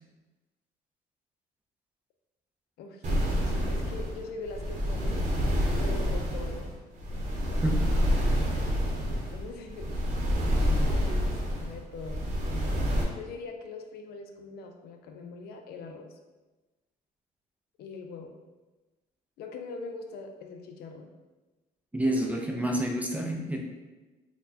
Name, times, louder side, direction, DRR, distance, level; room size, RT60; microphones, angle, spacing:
voice 1, 2.8-6.7 9.1-10.0 10.8-11.3 11.5-12.2 13.1-16.2 17.8-18.3 19.4-21.1, left 3 dB, 70° left, 4 dB, 0.4 m, -42 dB
sound 1, 3.0-13.0, equal, 45° right, 0.8 m, -28 dB
voice 2, 21.9-23.6, right 1 dB, 10° right, 0 dB, 0.4 m, -29 dB
4.2 x 2.2 x 2.7 m, 1.2 s
cardioid pair, 110°, 17 cm